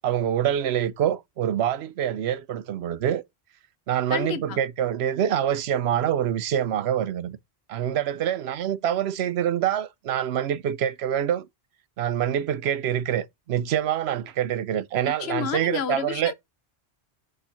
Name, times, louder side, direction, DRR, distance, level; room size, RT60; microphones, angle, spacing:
voice 1, 0.0-3.2 3.9-7.4 7.7-11.4 12.0-16.3, right 10 dB, 75° right, 0.9 m, -25 dB
voice 2, 4.1-4.6 15.2-16.3, left 9 dB, 75° left, 0.9 m, -30 dB
6.5 x 3.3 x 5.7 m
omnidirectional pair, 1.1 m